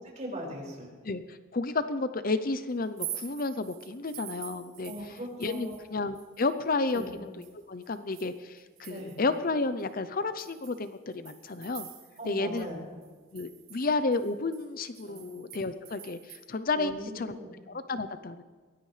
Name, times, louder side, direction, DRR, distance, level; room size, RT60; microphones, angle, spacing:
voice 1, 0.2-0.9 4.8-5.8 6.9-7.1 8.9-9.2 12.2-12.8 15.0-15.2 16.7-17.5, equal, 35° right, -2 dB, 5.6 m, -39 dB
voice 2, 1.0-4.9 5.4-11.9 12.3-12.7 13.3-17.4 17.7-18.4, left 3 dB, 40° left, 11 dB, 0.6 m, -32 dB
sound 1, 2.8-5.9 6.1-9.3 9.8-9.9 10.4-12.3 12.6-12.7 13.0-16.4, right 11 dB, 75° right, 4.3 m, -46 dB
23.0 x 19.0 x 3.3 m, 1.5 s
head